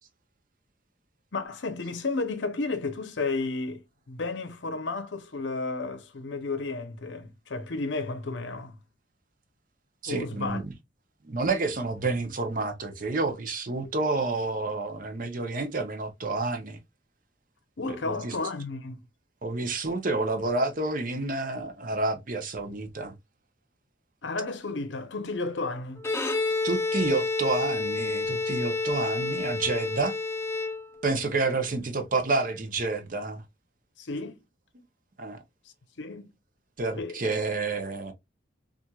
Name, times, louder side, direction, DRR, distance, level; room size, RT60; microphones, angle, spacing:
voice 1, 1.3-8.8 10.1-10.6 17.8-19.0 24.2-26.0 34.0-34.4 36.0-36.3 37.0-37.2, left 3 dB, 70° left, 0.7 m, -32 dB
voice 2, 10.0-10.6 11.3-16.8 17.9-18.3 19.4-23.1 26.6-30.1 31.0-33.4 35.2-35.4 36.8-38.1, right 3 dB, 45° right, 0.7 m, -29 dB
Bowed string instrument, 26.0-31.2, left 3 dB, 15° left, 0.3 m, -29 dB
4.2 x 2.5 x 2.3 m
head